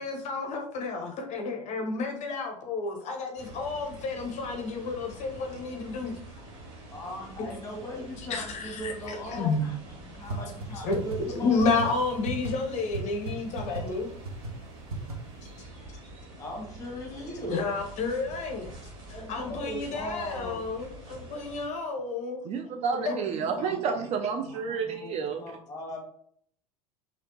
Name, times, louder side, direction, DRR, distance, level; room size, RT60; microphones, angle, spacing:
voice 1, 0.0-6.1 8.3-9.6 10.8-11.0 11.4-14.1 17.5-18.7 19.1-22.4 23.1-23.2, left 4 dB, 40° left, 2 dB, 0.6 m, -31 dB
sound 1, 3.4-21.7, right 2 dB, 55° right, 1.2 m, -46 dB
voice 2, 6.9-11.9 15.8-15.9 16.4-17.6 19.1-20.7 23.3-23.8 24.5-26.0, equal, 15° left, 0 dB, 1.3 m, -39 dB
sound 2, 10.3-10.4 10.6-10.7 10.9-11.2 11.6-11.8 12.2-12.5 12.9-13.0 13.3-13.4 13.6-13.8 14.2-14.5 14.9-15.1, right 1 dB, 85° right, 0.7 m, -34 dB
voice 3, 22.4-25.4, right 6 dB, 35° right, 5 dB, 0.4 m, -30 dB
3.2 x 2.8 x 2.7 m, 0.64 s
figure-of-eight pair, 75°, 19 cm